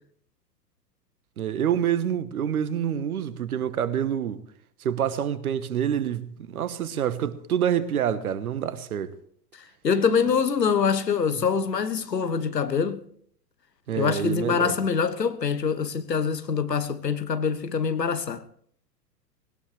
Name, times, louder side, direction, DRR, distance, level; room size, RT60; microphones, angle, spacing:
voice 1, 1.4-4.4 4.8-9.1 13.9-14.8, right 9 dB, 60° right, 1.4 m, -27 dB
voice 2, 9.8-13.0 14.0-18.4, left 6 dB, 80° left, 1.3 m, -24 dB
20.0 x 18.0 x 3.3 m
figure-of-eight pair, 105°, 49 cm